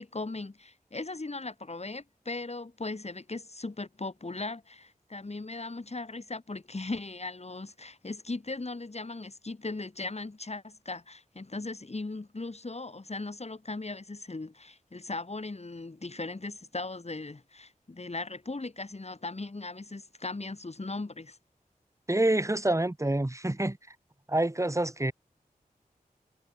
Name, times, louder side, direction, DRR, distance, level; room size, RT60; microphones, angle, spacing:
voice 1, 0.0-21.4, left 3 dB, 45° left, 2.9 m, -38 dB
voice 2, 22.1-23.8 24.3-25.1, right 1 dB, 20° right, 1.6 m, -27 dB
cardioid pair, 40°, 16 cm